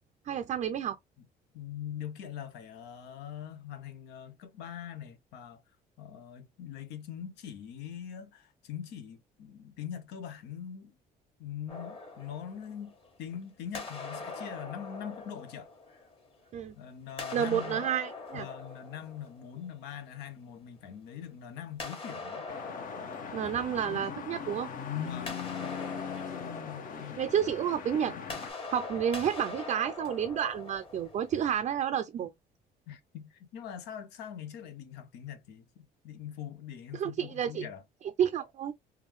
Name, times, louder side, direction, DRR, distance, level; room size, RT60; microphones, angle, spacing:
voice 1, 0.3-1.0 16.5-16.8 17.3-18.5 23.3-24.7 27.2-28.2 28.7-32.3 36.9-37.7 38.2-38.7, right 9 dB, 45° right, 0.4 m, -30 dB
voice 2, 1.5-5.6 6.0-10.9 11.4-12.9 13.2-15.7 16.8-17.9 18.3-22.5 23.8-24.0 25.0-25.7 26.9-27.2 32.9-37.8, left 9 dB, 85° left, 0.8 m, -43 dB
sound 1, 11.7-13.3 13.7-16.5 17.1-20.0 21.8-24.6 24.9-31.6, left 3 dB, 30° left, 1.4 m, -43 dB
sound 2, 22.5-28.5, left 7 dB, 55° left, 0.8 m, -39 dB
3.6 x 2.3 x 3.1 m
cardioid pair, 110°, 17 cm